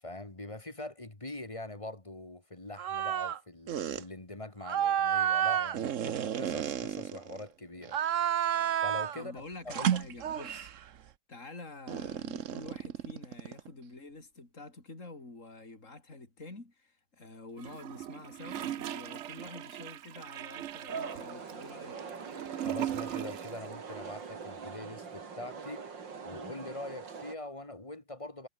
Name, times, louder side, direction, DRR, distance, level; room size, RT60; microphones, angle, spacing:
voice 1, 0.0-8.0 8.4-10.0 22.5-25.9 26.2-28.5, left 2 dB, 15° left, 2.2 m, -43 dB
sound 1, 2.8-3.4 3.7-4.0 4.6-7.4 7.8-9.2 9.7-10.8 11.9-13.7, right 9 dB, 50° right, 1.0 m, -31 dB
voice 2, 9.2-10.7 11.3-22.0, left 3 dB, 40° left, 5.3 m, -48 dB
Gurgling / Toilet flush, 17.6-23.7 23.9-24.0, right 11 dB, 90° right, 0.6 m, -39 dB
sound 2, 20.9-27.3, right 5 dB, 75° right, 3.2 m, -43 dB
omnidirectional pair, 2.0 m